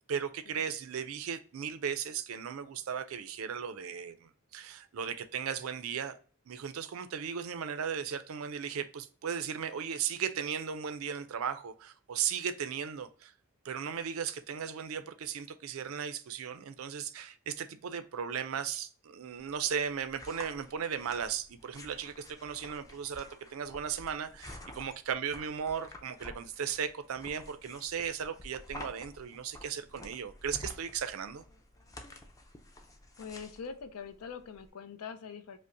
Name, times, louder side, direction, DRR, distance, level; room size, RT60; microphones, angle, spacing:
voice 1, 0.1-6.2 6.5-13.3 13.6-31.4, right 7 dB, 70° right, 0.4 m, -36 dB
sound 1, 19.4-34.7, left 1 dB, 15° left, 0.4 m, -50 dB
voice 2, 33.2-35.6, left 6 dB, 90° left, 0.5 m, -43 dB
5.1 x 2.0 x 2.6 m
head